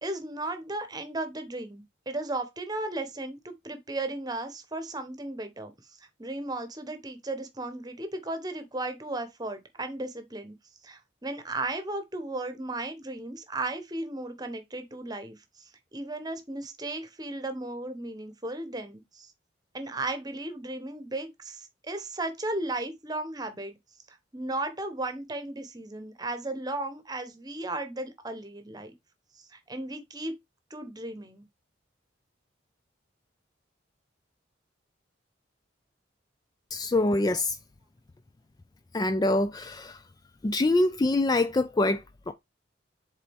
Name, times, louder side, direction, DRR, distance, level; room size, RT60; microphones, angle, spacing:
voice 1, 0.0-5.7 6.2-10.5 10.8-19.3 19.7-23.8 24.1-28.9 29.4-30.3 30.7-31.5, right 2 dB, 20° right, 1.0 m, -35 dB
voice 2, 36.7-37.6 38.9-40.1 40.4-42.3, left 2 dB, 20° left, 0.3 m, -25 dB
7.3 x 4.0 x 3.5 m
head